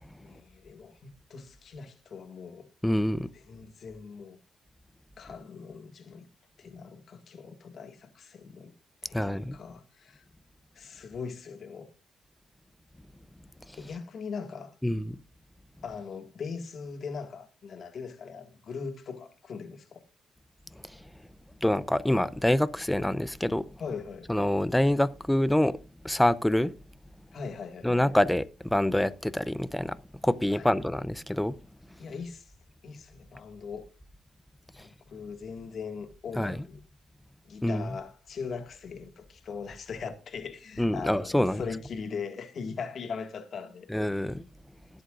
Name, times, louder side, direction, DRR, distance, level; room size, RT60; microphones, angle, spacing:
voice 1, 0.2-2.7 3.5-4.4 5.2-6.3 6.6-8.7 9.0-10.2 10.8-11.9 13.8-14.7 15.8-20.0 23.8-24.3 27.3-27.9 30.5-30.7 32.0-32.5 32.8-33.9 34.7-36.8 37.4-43.9, left 5 dB, 55° left, 1.9 m, -40 dB
voice 2, 2.8-3.3 9.1-9.6 14.8-15.2 21.6-23.7 24.3-25.8 26.0-26.7 27.8-30.0 30.2-31.5 36.4-36.6 37.6-38.0 40.8-41.6 43.9-44.5, left 1 dB, 5° left, 0.7 m, -26 dB
20.5 x 8.0 x 2.5 m
cardioid pair, 90°, 0 cm